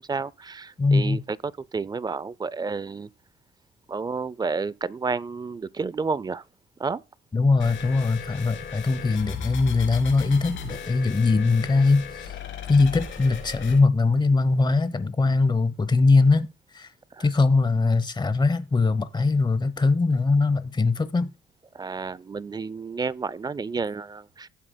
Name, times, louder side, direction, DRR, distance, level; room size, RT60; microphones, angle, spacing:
voice 1, 0.0-1.4 1.7-3.1 3.9-6.4 6.8-7.0 17.1-17.3 21.7-24.5, right 4 dB, 20° right, 0.4 m, -30 dB
voice 2, 0.8-1.2 7.3-12.3 12.7-16.5 16.7-16.9 17.2-21.3, left 3 dB, 20° left, 1.0 m, -21 dB
sound 1, 7.6-13.8, left 6 dB, 75° left, 3.1 m, -36 dB
15.5 x 7.3 x 2.2 m
cardioid pair, 90°, 20 cm